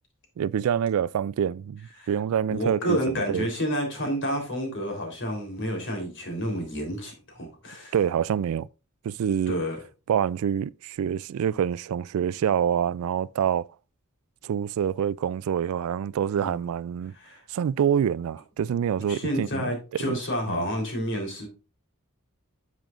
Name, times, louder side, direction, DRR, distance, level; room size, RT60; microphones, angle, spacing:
voice 1, 0.4-3.5 7.9-8.7 9.0-9.5 10.1-13.7 14.4-17.1 17.5-19.6 19.9-20.1 20.5-20.7, right 8 dB, 65° right, 0.3 m, -26 dB
voice 2, 2.5-8.0 9.5-9.8 16.4-16.5 17.1-17.4 19.1-21.5, equal, 60° left, 3.6 m, -30 dB
10.5 x 7.5 x 2.5 m
head